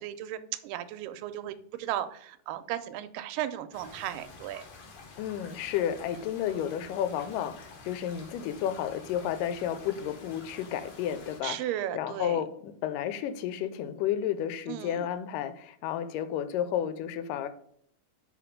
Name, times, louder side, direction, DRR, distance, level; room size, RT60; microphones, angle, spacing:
voice 1, 0.0-4.7 11.4-12.4 14.7-15.1, right 12 dB, 90° right, 11 dB, 2.3 m, -35 dB
sound 1, 3.7-11.4, left 4 dB, 60° left, 2.2 m, -49 dB
voice 2, 5.2-11.6 11.9-17.5, left 10 dB, 85° left, 11 dB, 2.3 m, -32 dB
5.0 x 5.0 x 5.0 m, 0.66 s
omnidirectional pair, 3.8 m